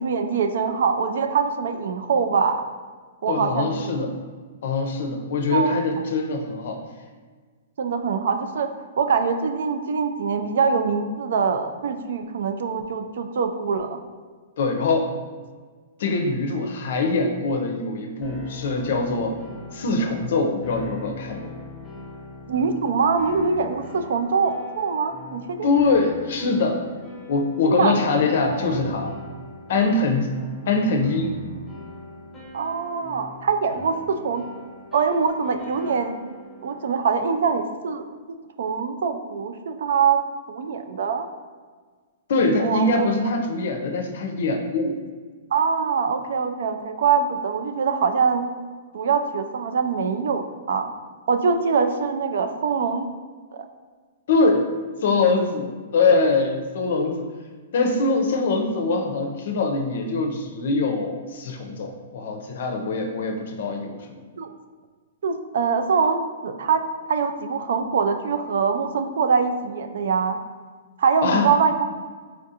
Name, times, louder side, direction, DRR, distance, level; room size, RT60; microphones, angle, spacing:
voice 1, 0.0-2.7 3.2-4.0 5.5-5.7 7.8-8.7 9.0-14.0 22.5-25.7 27.7-27.9 28.3-28.8 32.5-34.5 34.9-36.2 36.6-38.0 38.6-40.2 40.5-41.3 42.6-43.1 45.5-48.5 48.9-50.9 51.3-53.1 53.5-53.7 64.4-64.5 65.2-66.8 67.1-70.4 71.0-71.8, right 5 dB, 70° right, 7 dB, 0.3 m, -23 dB
voice 2, 3.3-4.1 4.6-6.8 14.6-15.1 16.0-19.4 19.7-21.5 25.6-26.8 27.3-29.1 29.7-30.3 30.7-31.3 42.3-45.0 54.3-54.6 55.0-57.3 57.7-64.2 71.2-71.5, left 3 dB, 60° left, 4 dB, 0.5 m, -23 dB
sound 1, 18.2-37.5, left 2 dB, 10° left, 0.8 m, -41 dB
4.4 x 2.4 x 2.7 m, 1.5 s
hypercardioid pair, 160°, 0 cm